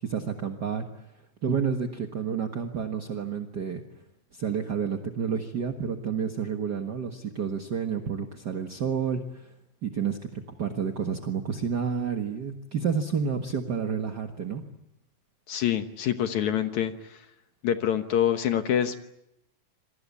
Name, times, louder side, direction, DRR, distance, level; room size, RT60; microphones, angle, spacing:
voice 1, 0.0-0.8 1.4-3.8 4.3-9.5 9.8-14.6, right 6 dB, 50° right, 5 dB, 1.2 m, -30 dB
voice 2, 15.5-17.3 17.6-19.0, left 10 dB, 65° left, 8 dB, 2.2 m, -26 dB
28.0 x 22.0 x 8.4 m, 0.82 s
omnidirectional pair, 4.1 m